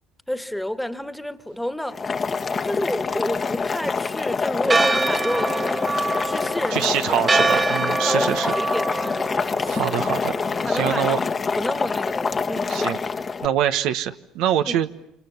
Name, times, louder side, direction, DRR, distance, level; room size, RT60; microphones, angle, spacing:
voice 1, 0.3-2.0 2.6-5.8 6.2-6.9 7.5-7.6 8.0-10.2 10.6-11.2 11.5-13.0 14.6-14.8, left 1 dB, 5° left, 1.8 m, -30 dB
Boiling, 1.9-13.5, left 5 dB, 35° left, 1.5 m, -26 dB
Church bell, 4.7-10.9, right 3 dB, 25° right, 1.2 m, -25 dB
voice 2, 6.7-8.5 9.7-10.3 10.7-11.2 12.7-13.0 13.4-14.9, right 10 dB, 75° right, 1.2 m, -24 dB
29.5 x 26.0 x 7.2 m
supercardioid pair, 85°, 0 cm